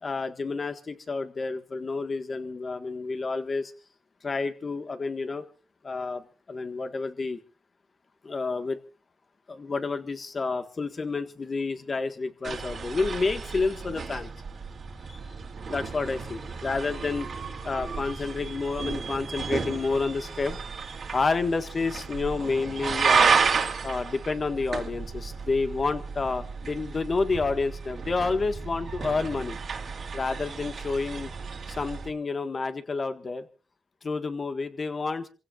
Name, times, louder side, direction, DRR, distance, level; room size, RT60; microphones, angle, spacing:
voice 1, 0.0-3.7 4.2-5.5 5.8-7.4 8.2-8.8 9.5-14.3 15.1-15.2 15.7-17.3 17.6-20.6 21.1-23.4 23.8-29.6 30.1-31.3 31.7-33.5 34.0-35.3, left 4 dB, 40° left, 8 dB, 1.6 m, -29 dB
sound 1, 12.4-32.1, right 5 dB, 55° right, 2.4 m, -31 dB
27.5 x 16.0 x 2.5 m, 0.36 s
cardioid pair, 100°, 0 cm